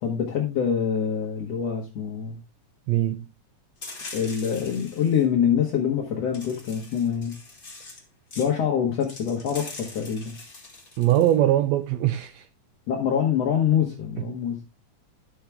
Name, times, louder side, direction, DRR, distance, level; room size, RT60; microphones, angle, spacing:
voice 1, 0.0-2.4 4.1-7.4 8.4-10.4 12.9-14.6, left 8 dB, 60° left, 2.4 m, -25 dB
voice 2, 2.9-3.3 11.0-12.4, right 13 dB, 85° right, 1.5 m, -21 dB
sound 1, 3.8-5.2 6.3-8.0 8.3-8.5 9.0-11.3, left 3 dB, 20° left, 1.7 m, -42 dB
11.0 x 6.5 x 3.4 m
omnidirectional pair, 3.6 m